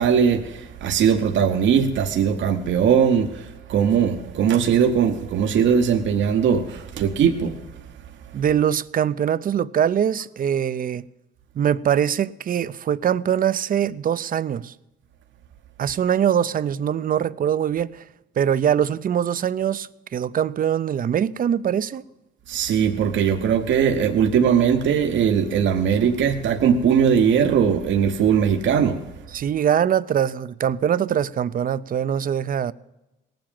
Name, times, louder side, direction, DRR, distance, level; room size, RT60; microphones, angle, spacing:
voice 1, 0.0-7.6 22.5-29.0, right 7 dB, 70° right, 1.0 m, -20 dB
voice 2, 8.3-11.0 11.6-14.7 15.8-18.0 18.4-22.1 29.3-32.7, right 9 dB, 45° right, 0.5 m, -22 dB
18.0 x 7.8 x 8.8 m
cardioid pair, 90°, 20 cm